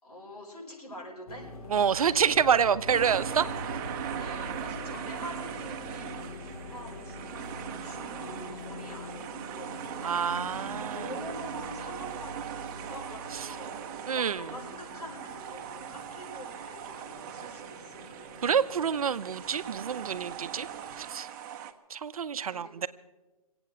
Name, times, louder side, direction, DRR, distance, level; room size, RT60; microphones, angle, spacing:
voice 1, 0.0-2.2 4.1-13.8 14.1-18.1 22.5-22.7, left 1 dB, 85° left, -1 dB, 5.3 m, -46 dB
sound 1, 1.3-21.1, left 2 dB, 65° left, 2.7 m, -45 dB
voice 2, 1.7-3.5 10.0-11.1 13.3-13.5 14.1-14.4 18.4-20.7 21.0-21.3 21.9-22.9, right 7 dB, 70° right, 13 dB, 0.8 m, -27 dB
sound 2, 2.9-21.7, right 10 dB, 35° right, 1.0 m, -40 dB
24.5 x 8.9 x 6.2 m, 1.1 s
hypercardioid pair, 140°, 19 cm